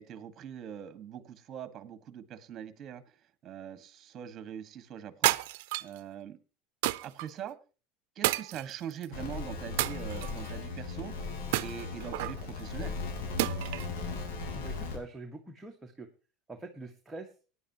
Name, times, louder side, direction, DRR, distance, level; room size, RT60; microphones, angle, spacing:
voice 1, 0.0-3.0 3.4-5.4 5.8-6.4 7.0-7.6 8.1-12.9, right 9 dB, 35° right, 12 dB, 1.6 m, -42 dB
sound 1, 5.2-6.0 6.8-7.3 8.2-9.1 9.8-10.5 11.5-12.4 13.4-13.9, right 19 dB, 70° right, 0.6 m, -30 dB
sound 2, 9.1-15.0, left 4 dB, 75° left, 4.0 m, -37 dB
voice 2, 14.4-16.1 16.5-17.3, right 2 dB, 10° right, 2 dB, 1.4 m, -44 dB
17.5 x 10.0 x 2.9 m, 0.34 s
supercardioid pair, 125°, 0 cm